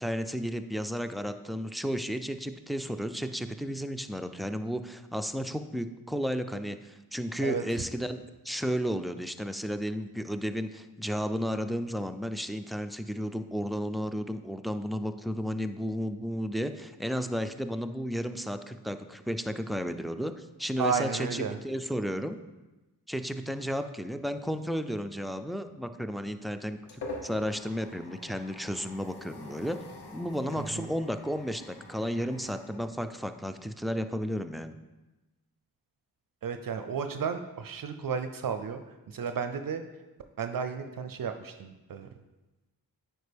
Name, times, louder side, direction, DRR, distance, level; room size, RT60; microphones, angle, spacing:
voice 1, 0.0-22.4 23.1-29.8 30.1-34.8, equal, ahead, 8 dB, 0.3 m, -33 dB
voice 2, 20.8-21.6 30.6-30.9 36.4-38.8 39.1-39.8 40.4-42.1, right 6 dB, 60° right, 8 dB, 0.5 m, -33 dB
sound 1, 26.4-33.6, left 2 dB, 85° left, 1.1 m, -46 dB
9.4 x 4.5 x 3.4 m, 1.1 s
wide cardioid pair, 70°, 39 cm